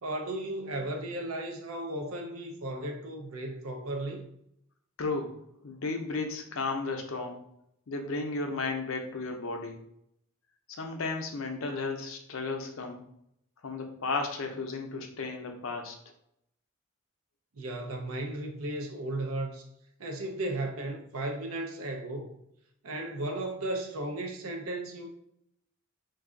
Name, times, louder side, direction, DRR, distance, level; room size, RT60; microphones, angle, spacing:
voice 1, 0.0-4.3 17.5-19.6 20.0-22.4 22.8-25.1, right 1 dB, 85° right, 0.6 m, -35 dB
voice 2, 5.0-7.4 7.9-9.8 10.7-13.0 13.6-16.0, left 3 dB, 70° left, 0.6 m, -34 dB
2.6 x 2.3 x 3.6 m
head